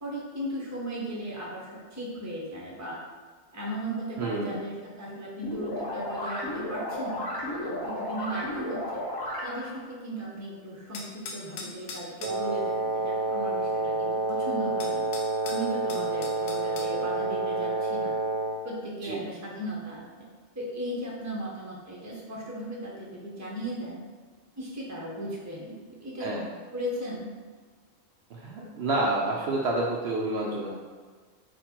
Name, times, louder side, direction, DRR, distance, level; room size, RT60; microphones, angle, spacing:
voice 1, 0.0-3.0 3.5-7.3 7.6-9.0 9.4-15.0 15.4-18.1 18.6-20.0 20.5-24.0 24.6-25.7 26.0-26.3 26.7-27.3, right 1 dB, 15° right, -4 dB, 0.7 m, -36 dB
voice 2, 4.2-4.6 19.0-19.3 26.2-26.5 28.3-30.7, right 2 dB, 65° right, -3 dB, 0.7 m, -29 dB
sound 1, 5.4-9.8, left 1 dB, 25° left, 0.6 m, -33 dB
sound 2, 10.9-12.4 14.3-14.4 14.8-16.9, left 4 dB, 70° left, 0.9 m, -40 dB
Wind instrument woodwind instrument, 12.2-18.7, right 2 dB, 85° right, 1.1 m, -29 dB
4.3 x 2.4 x 4.3 m, 1.5 s
omnidirectional pair, 1.4 m